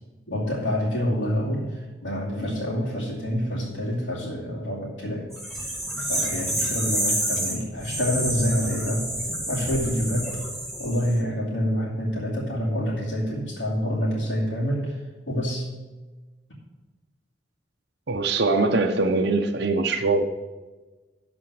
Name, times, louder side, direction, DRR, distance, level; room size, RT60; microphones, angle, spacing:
voice 1, 0.3-5.3 5.5-9.1 9.5-10.4 10.8-15.0 15.3-15.7, equal, 80° left, -8 dB, 2.5 m, -27 dB
sound 1, 5.3-11.1, right 1 dB, ahead, 1.7 m, -29 dB
voice 2, 18.1-20.2, right 3 dB, 60° right, 3 dB, 0.7 m, -22 dB
12.5 x 4.3 x 7.7 m, 1.2 s
head